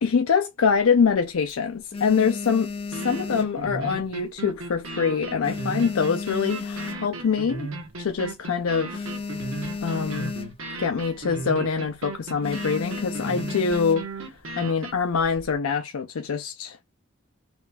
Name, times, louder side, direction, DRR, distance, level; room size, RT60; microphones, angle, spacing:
voice 1, 0.0-7.7 8.0-9.1 9.8-10.4 10.8-17.0, left 5 dB, 85° left, 0.5 m, -25 dB
sound 1, 0.6-1.3 1.7-4.2 4.5-4.9 5.2-7.4 7.9-8.0 8.2-8.3 8.6-10.8 11.1-11.4 11.7-12.0 12.4-14.2 15.0-15.5, left 4 dB, 25° left, 0.4 m, -34 dB
sound 2, 1.5-1.6 2.0-2.1 2.4-2.5 2.9-14.9, right 3 dB, 75° right, 1.2 m, -36 dB
4.2 x 2.3 x 4.0 m
head